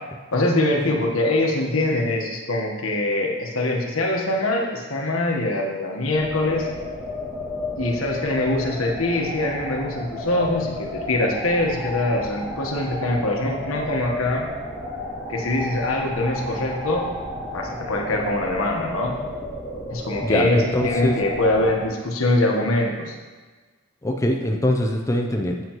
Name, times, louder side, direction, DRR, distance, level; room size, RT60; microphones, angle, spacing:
voice 1, 0.3-6.7 7.8-14.5 15.3-17.1 17.5-19.2 19.9-23.2, left 1 dB, 90° left, 0 dB, 1.2 m, -23 dB
sound 1, 6.1-21.9, left 2 dB, 10° right, 2.0 m, -32 dB
voice 2, 20.2-21.1 24.0-25.6, left 1 dB, 15° left, 1 dB, 0.5 m, -23 dB
7.7 x 7.6 x 3.0 m, 1.3 s
head